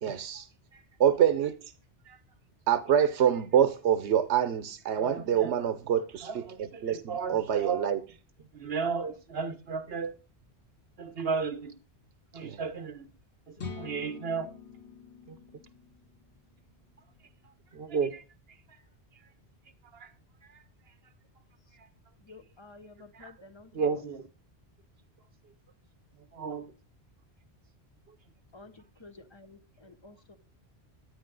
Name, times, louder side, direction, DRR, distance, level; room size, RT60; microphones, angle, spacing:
voice 1, 0.0-0.5 1.0-1.6 2.7-6.4 6.8-8.0 12.4-12.6, right 9 dB, 85° right, 1.0 m, -26 dB
voice 2, 5.0-5.5 6.2-7.9 8.5-10.1 11.0-11.7 12.3-13.1 13.8-14.5 15.3-15.4 17.7-18.2 19.9-20.1 23.1-23.3 23.7-24.3 26.3-26.7, right 5 dB, 65° right, 1.4 m, -33 dB
sound 1, 13.6-17.3, left 5 dB, 85° left, 2.2 m, -45 dB
voice 3, 22.3-23.7 28.5-30.4, left 3 dB, 25° left, 1.1 m, -52 dB
11.5 x 9.9 x 3.9 m
omnidirectional pair, 1.1 m